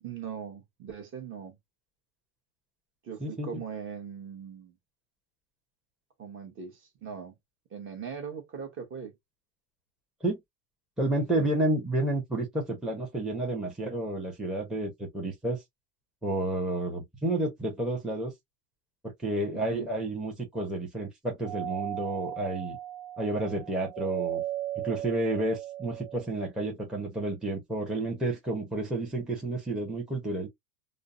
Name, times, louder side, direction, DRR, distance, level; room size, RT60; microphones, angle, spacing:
voice 1, 0.0-1.6 3.0-4.7 6.2-7.3 7.7-9.1 11.3-11.5 19.7-19.9, right 7 dB, 30° right, 0.9 m, -40 dB
voice 2, 11.0-15.6 16.2-18.3 19.0-22.8 23.2-24.4 24.8-30.5, right 1 dB, ahead, 0.6 m, -30 dB
Doorbell, 21.4-26.3, right 13 dB, 65° right, 0.5 m, -36 dB
2.5 x 2.0 x 2.4 m
supercardioid pair, 120°, 41 cm